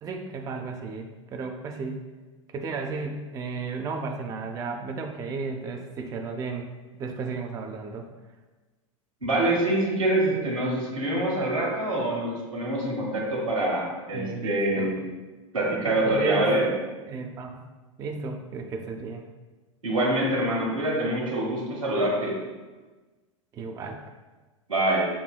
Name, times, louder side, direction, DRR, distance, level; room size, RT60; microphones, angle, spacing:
voice 1, 0.0-2.0 2.5-6.7 7.0-8.1 14.1-14.9 15.9-16.6 17.1-17.7 18.0-19.3 23.5-24.0, right 4 dB, 20° right, 3 dB, 0.3 m, -34 dB
voice 2, 9.2-14.9 15.5-16.7 19.8-22.3 24.7-25.1, right 1 dB, 85° right, -4 dB, 1.2 m, -25 dB
6.5 x 2.6 x 2.2 m, 1.2 s
figure-of-eight pair, 85°, 17 cm